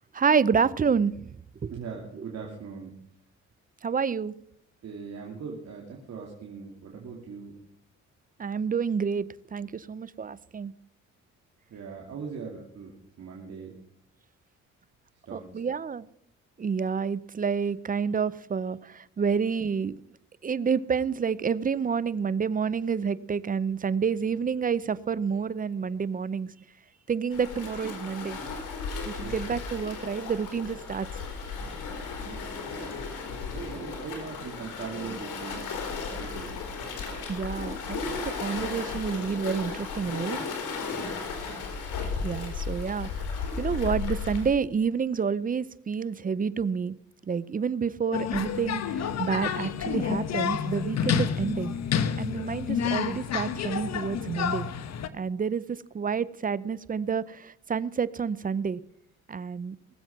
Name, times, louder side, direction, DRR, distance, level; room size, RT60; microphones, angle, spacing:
voice 1, 0.1-1.1 1.6-1.7 3.8-4.3 8.4-10.7 15.3-16.1 16.6-19.9 20.4-26.5 27.1-28.4 29.0-31.1 37.3-40.4 42.2-43.1 43.6-47.0 47.3-51.8 52.2-54.7 55.1-58.8 59.3-59.8, right 6 dB, 30° right, 19 dB, 0.6 m, -29 dB
voice 2, 1.7-3.0 4.8-7.6 11.7-13.8 15.3-15.7 29.2-29.4 32.3-33.1 33.5-35.8 36.1-36.7 41.0-41.3, right 5 dB, 60° right, -1 dB, 2.5 m, -40 dB
Waves surf, 27.3-44.5, left 5 dB, 85° left, 3.6 m, -35 dB
sound 1, 48.1-55.1, left 7 dB, 60° left, 1.1 m, -29 dB
19.5 x 7.7 x 5.8 m, 0.73 s
cardioid pair, 90°, 30 cm